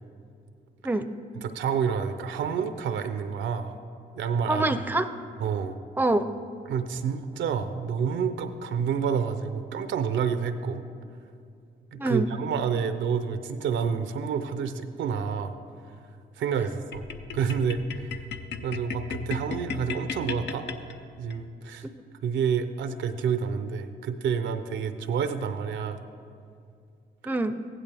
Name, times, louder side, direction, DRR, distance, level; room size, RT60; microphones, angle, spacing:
voice 1, 1.4-3.7 4.1-4.7 5.4-5.8 6.7-10.8 11.9-15.5 16.4-17.0 17.3-18.1 18.6-20.7 21.2-21.9 22.2-26.0, right 6 dB, 85° right, 10 dB, 0.6 m, -29 dB
voice 2, 4.5-5.1 6.0-6.3 11.9-12.3 21.8-22.0 27.3-27.6, right 2 dB, 10° right, 10 dB, 0.5 m, -25 dB
sound 1, 16.9-21.4, left 5 dB, 70° left, 0.7 m, -36 dB
15.5 x 11.0 x 3.4 m, 2.4 s
cardioid pair, 65°, 19 cm